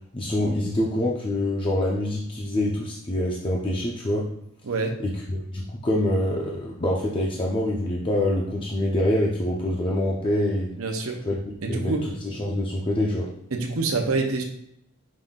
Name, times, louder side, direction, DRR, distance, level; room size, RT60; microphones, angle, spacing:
voice 1, 0.1-4.3 5.0-10.7 11.3-13.3, left 1 dB, 25° left, -3 dB, 0.5 m, -25 dB
voice 2, 4.6-5.0 10.8-11.2 11.6-12.0 13.5-14.4, right 3 dB, 80° right, 2 dB, 0.8 m, -26 dB
5.5 x 2.6 x 3.6 m, 0.75 s
head